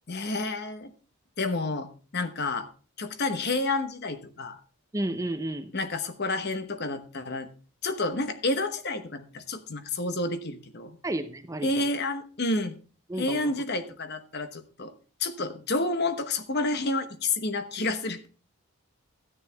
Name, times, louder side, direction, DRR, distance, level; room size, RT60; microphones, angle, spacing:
voice 1, 0.1-0.9 1.4-1.9 2.1-2.7 3.0-4.6 5.7-7.5 7.8-11.0 11.6-12.8 13.2-14.9 15.2-18.3, left 2 dB, 45° left, 1.1 m, -29 dB
voice 2, 4.9-5.7 11.0-11.9 13.1-13.5, right 1 dB, 15° right, 0.6 m, -32 dB
13.0 x 9.5 x 3.5 m
head